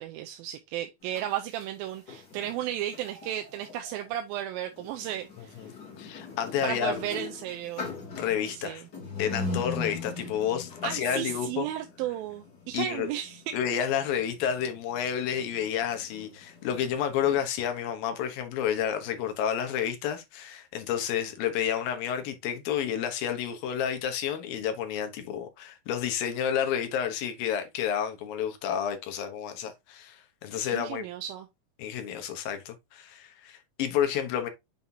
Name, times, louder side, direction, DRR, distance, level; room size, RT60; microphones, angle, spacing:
voice 1, 0.0-5.7 6.6-7.9 8.5-8.8 10.8-13.6 30.7-31.5, right 12 dB, 80° right, 2.4 m, -34 dB
sound 1, 1.0-3.8 4.7-17.4, left 3 dB, 30° left, 3.1 m, -41 dB
sound 2, 2.9-4.1, right 3 dB, 40° right, 2.3 m, -52 dB
voice 2, 6.0-6.9 8.2-8.8 9.2-11.7 12.7-13.1 13.5-31.0 31.8-34.5, left 9 dB, 75° left, 2.9 m, -30 dB
7.4 x 5.6 x 2.8 m
omnidirectional pair, 4.3 m